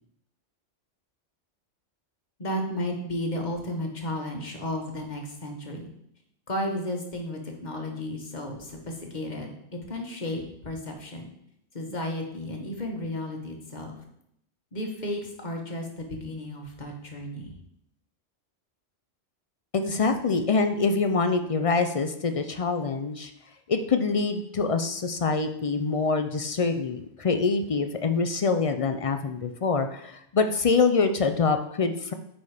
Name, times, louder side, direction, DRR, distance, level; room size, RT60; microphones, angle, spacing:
voice 1, 2.4-5.9 6.5-11.3 11.7-13.9 14.7-17.5, left 1 dB, 40° left, 2 dB, 1.4 m, -33 dB
voice 2, 19.7-23.3 23.7-32.1, left 4 dB, 55° left, 8 dB, 0.4 m, -25 dB
9.5 x 4.5 x 4.9 m, 0.74 s
omnidirectional pair, 1.3 m